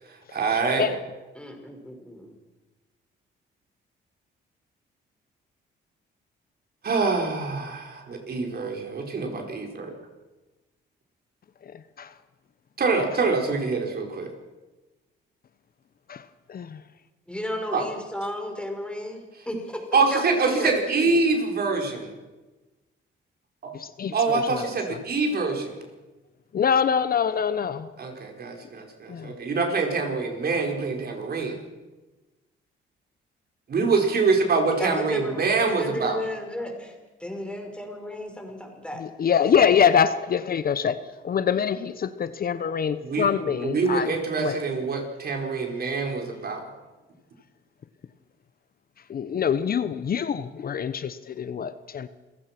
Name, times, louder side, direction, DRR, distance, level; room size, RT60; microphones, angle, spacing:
voice 1, 0.3-0.9 6.8-9.9 12.8-14.3 17.7-17.9 19.9-22.1 23.6-23.7 24.1-25.8 28.0-31.6 33.7-36.2 43.0-46.6, right 4 dB, 50° right, 4.9 m, -25 dB
voice 2, 1.3-2.3 17.3-19.8 20.1-21.2 34.8-39.0 39.4-39.7, left 1 dB, 5° left, 5.5 m, -34 dB
voice 3, 16.5-16.8 23.7-24.6 24.9-25.0 26.5-27.9 29.1-29.3 39.0-41.0 41.2-44.1 44.4-44.6 49.1-52.1, left 7 dB, 50° left, 1.0 m, -24 dB
27.5 x 16.5 x 6.1 m
cardioid pair, 90°, 20 cm